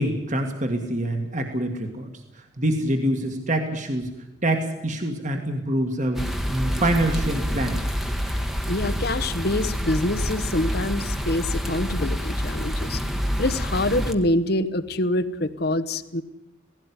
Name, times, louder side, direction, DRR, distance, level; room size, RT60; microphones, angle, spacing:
voice 1, 0.0-2.1 2.6-4.1 4.4-6.2 6.5-7.8, right 1 dB, 40° right, 4 dB, 2.0 m, -25 dB
sound 1, 6.1-14.1, equal, ahead, 1.3 m, -27 dB
voice 2, 8.7-13.0 13.4-16.2, left 1 dB, 55° left, 12 dB, 1.1 m, -25 dB
18.0 x 16.0 x 9.8 m, 0.96 s
head